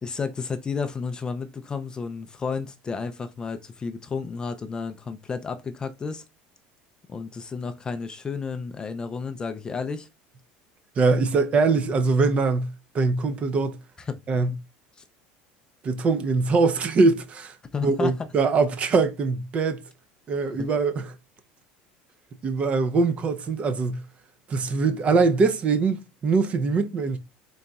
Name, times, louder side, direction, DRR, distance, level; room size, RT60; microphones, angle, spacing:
voice 1, 0.0-6.2 7.1-10.1 14.1-14.2 15.0-15.1 17.7-18.1 20.6-20.7, left 5 dB, 20° left, 0.4 m, -32 dB
voice 2, 11.0-13.8 14.3-14.5 15.8-17.6 17.8-19.9 20.3-21.1 22.4-24.0 24.5-27.2, right 4 dB, 30° right, 0.5 m, -22 dB
3.9 x 3.8 x 2.3 m
cardioid pair, 135°, 4 cm